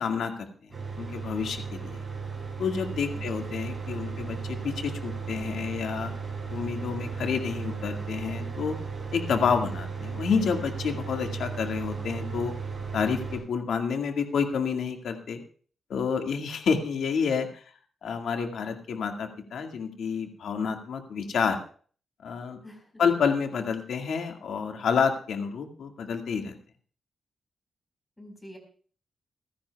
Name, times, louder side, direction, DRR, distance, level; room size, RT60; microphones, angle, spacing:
voice 1, 0.0-2.0 2.6-6.1 6.5-8.8 9.1-12.5 12.9-15.4 15.9-17.6 18.0-21.6 22.2-22.6 23.0-26.6, left 6 dB, 75° left, 4 dB, 1.9 m, -29 dB
Mechanical fan, 0.7-13.4, right 5 dB, 20° right, 7.4 m, -35 dB
voice 2, 22.6-23.0 28.2-28.6, equal, 10° left, 3 dB, 4.4 m, -47 dB
29.0 x 10.5 x 2.3 m, 0.43 s
wide cardioid pair, 160°, 0 cm